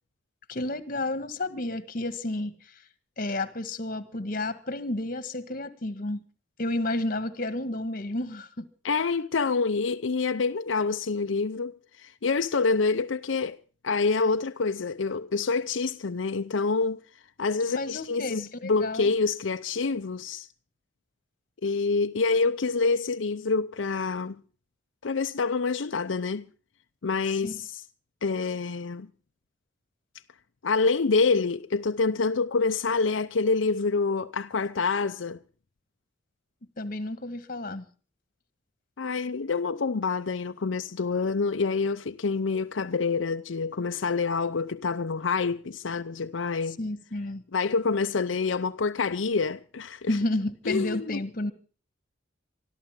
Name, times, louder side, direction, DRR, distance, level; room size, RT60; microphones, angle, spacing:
voice 1, 0.5-2.5 3.2-6.2 6.6-8.6 17.7-19.2 27.4-27.5 36.8-37.8 46.8-47.4 50.1-51.5, left 2 dB, 45° left, 1.7 m, -31 dB
voice 2, 8.8-13.6 13.8-17.0 17.4-20.5 21.6-24.4 25.0-26.5 27.0-27.8 28.2-29.1 30.6-35.4 39.0-46.8 47.5-50.2 50.7-51.2, left 4 dB, 85° left, 0.7 m, -27 dB
25.0 x 13.5 x 3.7 m
head